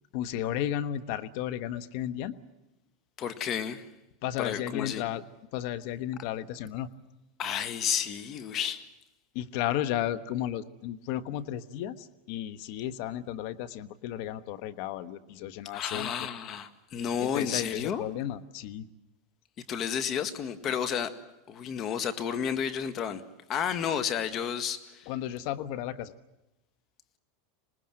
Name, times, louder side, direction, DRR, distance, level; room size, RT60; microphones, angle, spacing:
voice 1, 0.1-2.3 4.2-5.2 5.5-6.9 9.3-16.1 17.2-18.9 25.1-26.1, left 11 dB, 60° left, 1.2 m, -33 dB
voice 2, 3.2-3.9 4.4-5.0 7.4-8.9 15.7-18.0 19.7-21.2 21.5-23.2 23.5-25.1, left 8 dB, 40° left, 1.8 m, -31 dB
26.5 x 19.5 x 7.7 m
hypercardioid pair, 115°, 0 cm